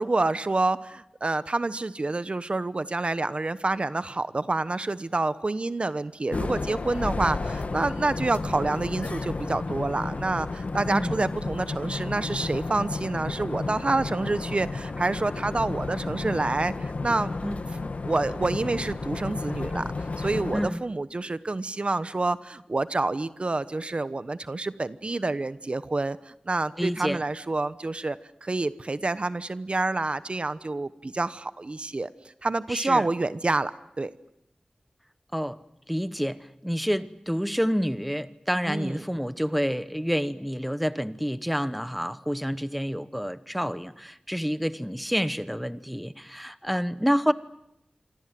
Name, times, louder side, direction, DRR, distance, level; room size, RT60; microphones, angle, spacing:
voice 1, 0.0-17.3 18.0-32.1 32.4-33.7 34.0-34.1 38.6-39.0, right 2 dB, 50° right, 1.0 m, -28 dB
sound 1, 6.3-20.7, left 3 dB, 70° left, 1.5 m, -32 dB
voice 2, 26.8-27.2 32.7-33.0 35.3-35.6 35.9-36.4 36.6-47.3, equal, ahead, 1.1 m, -28 dB
27.0 x 25.0 x 7.7 m
wide cardioid pair, 60°, 3 cm